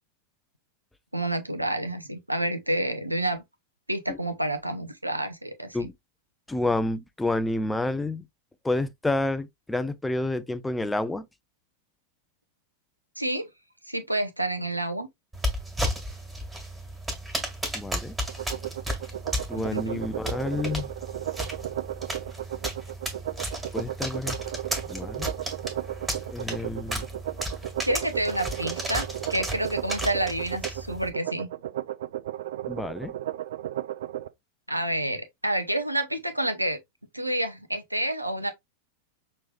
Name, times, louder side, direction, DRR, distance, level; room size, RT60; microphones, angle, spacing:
voice 1, 1.1-3.4 3.9-5.9 13.2-13.5 13.9-15.1 19.6-20.0 27.8-31.5 34.7-36.8 37.1-38.5, right 1 dB, 85° right, 0.7 m, -29 dB
voice 2, 6.5-8.2 8.6-11.3 17.7-18.2 19.5-20.9 23.7-24.4 24.9-25.3 26.3-27.1 32.7-33.1, left 2 dB, 5° left, 0.5 m, -29 dB
sound 1, 15.3-31.1, equal, 10° right, 1.8 m, -34 dB
sound 2, 18.3-34.3, right 13 dB, 60° right, 0.4 m, -34 dB
6.0 x 3.2 x 2.3 m
figure-of-eight pair, 90°, 0 cm